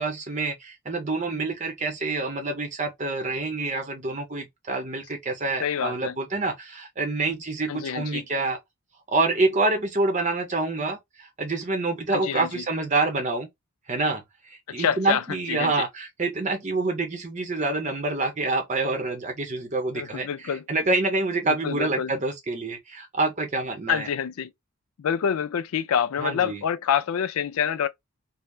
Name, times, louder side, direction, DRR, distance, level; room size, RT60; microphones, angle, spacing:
voice 1, 0.0-8.6 9.1-13.5 13.9-24.1 26.2-26.6, right 3 dB, 35° right, 0.7 m, -27 dB
voice 2, 5.6-6.2 7.7-8.2 12.1-12.6 14.7-15.2 15.5-15.9 20.0-20.6 21.5-22.1 23.9-24.5 25.0-27.9, left 8 dB, 75° left, 0.4 m, -27 dB
3.2 x 2.0 x 2.3 m
head